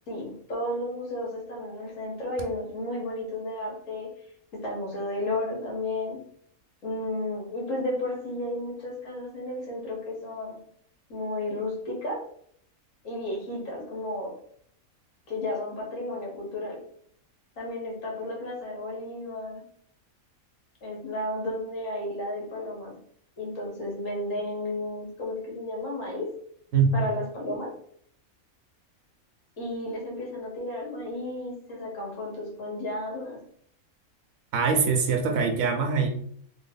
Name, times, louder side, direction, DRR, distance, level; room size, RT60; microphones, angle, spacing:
voice 1, 0.1-4.1 4.5-6.2 6.8-10.6 11.1-12.3 13.0-14.4 15.3-16.8 17.6-19.6 20.8-23.0 23.4-26.4 26.9-27.8 29.6-33.4, left 1 dB, 65° left, -2 dB, 1.5 m, -33 dB
voice 2, 34.5-36.1, right 5 dB, 75° right, 4 dB, 1.0 m, -23 dB
3.3 x 2.1 x 3.7 m, 0.63 s
omnidirectional pair, 1.5 m